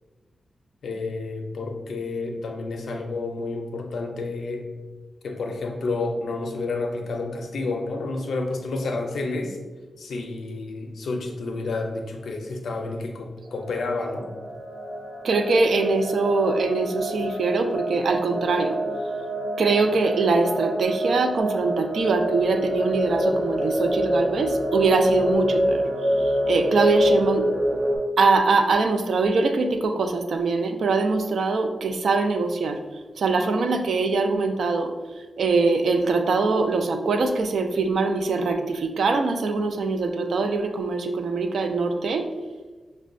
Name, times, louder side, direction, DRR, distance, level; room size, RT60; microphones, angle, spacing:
voice 1, 0.8-4.7 5.2-9.6 10.0-14.3, left 3 dB, 90° left, 3 dB, 0.5 m, -30 dB
sound 1, 13.5-28.0, equal, 25° right, 0.9 m, -26 dB
voice 2, 15.2-18.7 19.6-25.8 26.5-27.5 28.2-32.8 33.2-34.9 35.4-42.3, right 3 dB, 70° right, 6 dB, 0.3 m, -22 dB
5.2 x 2.1 x 2.5 m, 1.3 s
wide cardioid pair, 180°, 0 cm